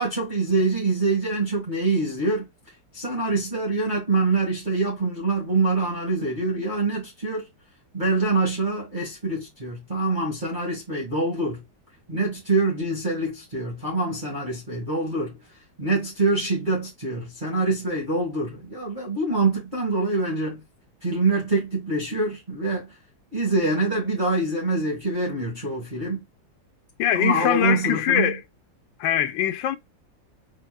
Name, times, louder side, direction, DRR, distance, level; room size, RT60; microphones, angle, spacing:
voice 1, 0.0-7.5 7.9-11.6 12.1-15.4 15.8-20.6 21.0-23.0 23.3-26.2 27.1-28.4, right 3 dB, 25° right, 1.8 m, -25 dB
voice 2, 27.0-28.4 29.0-29.8, left 11 dB, 80° left, 1.4 m, -22 dB
4.5 x 4.1 x 2.2 m
omnidirectional pair, 2.1 m